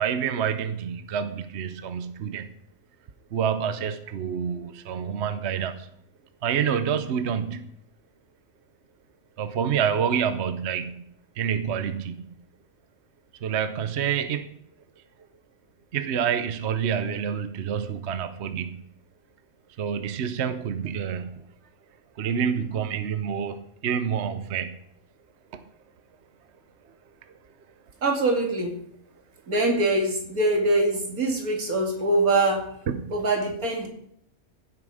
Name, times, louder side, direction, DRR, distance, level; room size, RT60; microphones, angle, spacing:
voice 1, 0.0-2.5 3.3-5.9 6.4-7.7 9.4-11.0 11.4-12.3 13.4-14.5 15.9-18.8 19.8-21.4 22.2-24.8 25.5-25.6 32.9-33.1, right 7 dB, 55° right, 10 dB, 1.0 m, -28 dB
voice 2, 28.0-28.7 29.5-32.6 33.1-33.9, right 2 dB, 80° right, 2 dB, 2.9 m, -23 dB
16.0 x 7.6 x 5.0 m, 0.72 s
omnidirectional pair, 1.5 m